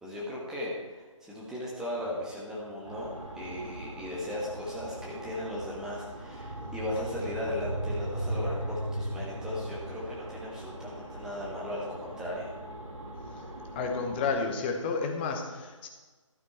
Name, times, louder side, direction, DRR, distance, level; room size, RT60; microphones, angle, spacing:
voice 1, 0.0-12.5, left 1 dB, 5° right, -6 dB, 1.3 m, -37 dB
sound 1, 2.8-14.3, right 1 dB, 80° right, 2.4 m, -38 dB
voice 2, 13.7-15.9, left 4 dB, 20° left, 3 dB, 1.1 m, -31 dB
12.0 x 9.3 x 4.4 m, 1.3 s
figure-of-eight pair, 145°, 17 cm